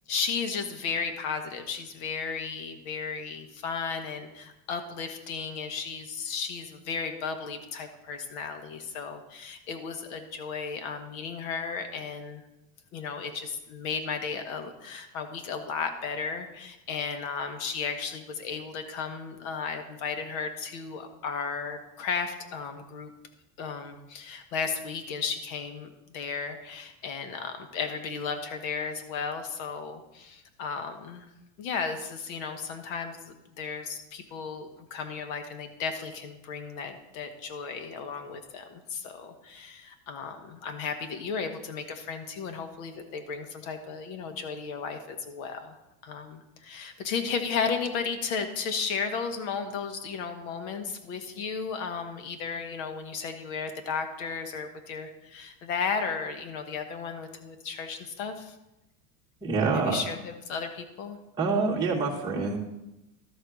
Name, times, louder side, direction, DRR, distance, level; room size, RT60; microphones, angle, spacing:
voice 1, 0.1-12.4 12.9-23.1 23.6-31.3 31.6-58.5 59.7-61.2, left 5 dB, 60° left, 7 dB, 1.5 m, -34 dB
voice 2, 59.4-60.0 61.4-62.6, right 4 dB, 10° right, -4 dB, 1.3 m, -26 dB
12.5 x 4.2 x 6.3 m, 0.94 s
supercardioid pair, 155°, 45 cm